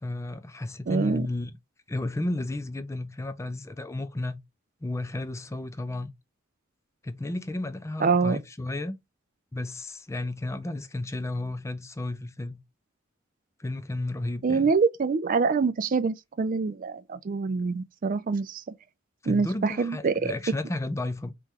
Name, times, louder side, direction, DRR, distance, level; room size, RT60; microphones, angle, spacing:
voice 1, 0.0-1.5 1.9-4.4 4.8-6.1 7.0-9.0 9.5-12.6 13.6-14.7 19.2-21.3, left 2 dB, 15° left, 0.4 m, -33 dB
voice 2, 0.9-1.3 8.0-8.4 14.4-18.7 19.3-20.3, right 4 dB, 45° right, 0.4 m, -25 dB
4.3 x 3.0 x 3.6 m
head